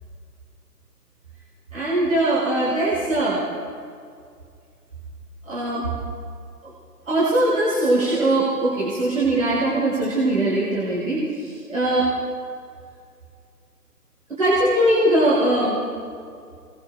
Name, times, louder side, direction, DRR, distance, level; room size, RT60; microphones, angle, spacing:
voice 1, 1.7-3.4 5.5-5.9 6.6-6.7 7.1-12.1 14.3-15.8, right 1 dB, 55° right, -8 dB, 5.7 m, -21 dB
28.0 x 23.0 x 2.3 m, 2.3 s
figure-of-eight pair, 145°, 48 cm